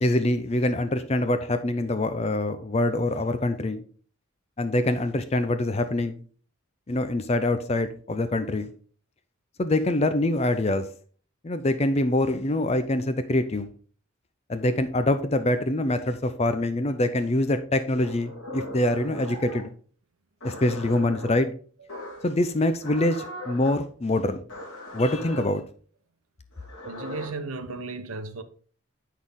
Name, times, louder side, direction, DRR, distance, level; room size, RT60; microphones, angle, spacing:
voice 1, 0.0-3.8 4.6-6.2 6.9-8.7 9.6-10.8 11.4-13.7 14.5-19.7 20.4-21.5 22.2-24.4 24.9-25.6, left 1 dB, 30° left, 0.5 m, -25 dB
sound 1, 18.0-19.7 20.4-21.3 21.9-22.3 22.8-23.7 24.5-25.4 26.5-27.3, left 1 dB, 55° left, 3.3 m, -39 dB
voice 2, 26.8-28.4, right 3 dB, 75° right, 0.9 m, -35 dB
8.2 x 6.2 x 3.7 m
head